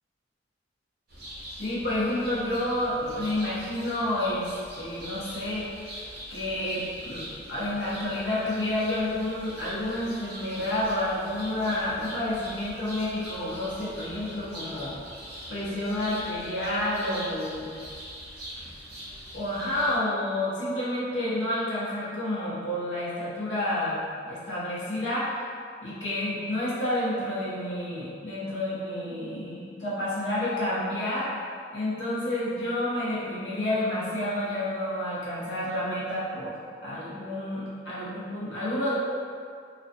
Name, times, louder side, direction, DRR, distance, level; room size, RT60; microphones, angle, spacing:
sound 1, 1.1-20.0, equal, 55° right, 0.7 m, -43 dB
voice 1, 1.6-5.7 6.3-15.0 15.5-17.8 19.3-24.0 24.3-25.3 25.8-31.3 31.7-36.5 36.8-38.9, left 1 dB, 70° left, -9 dB, 0.8 m, -29 dB
2.4 x 2.3 x 2.5 m, 2.2 s
head